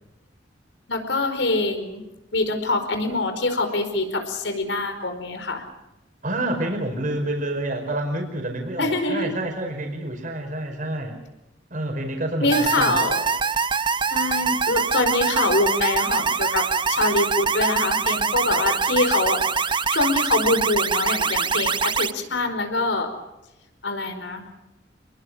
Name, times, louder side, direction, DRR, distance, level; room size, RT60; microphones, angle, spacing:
voice 1, 0.9-2.0 2.3-5.6 8.8-9.4 12.4-13.2 14.1-23.1 23.8-24.4, left 2 dB, 85° left, 8 dB, 4.9 m, -24 dB
voice 2, 6.2-11.2 11.7-13.0, right 1 dB, 50° right, 3 dB, 5.2 m, -28 dB
sound 1, 12.5-22.1, right 5 dB, 25° right, 0.8 m, -24 dB
28.5 x 22.0 x 6.4 m, 0.95 s
head